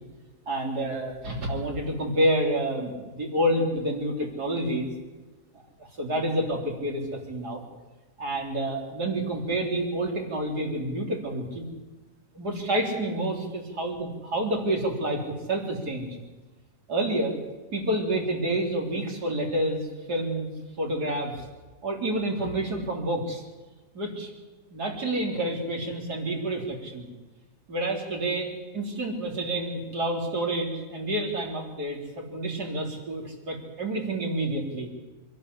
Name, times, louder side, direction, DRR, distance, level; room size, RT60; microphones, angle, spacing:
voice 1, 0.5-4.9 6.0-7.6 8.2-11.6 12.3-16.2 16.9-17.3 17.7-20.5 20.8-21.4 21.8-23.4 23.9-24.3 24.7-27.1 27.7-34.9, right 1 dB, 90° right, 1 dB, 4.1 m, -28 dB
24.5 x 12.0 x 9.9 m, 1.2 s
omnidirectional pair, 1.7 m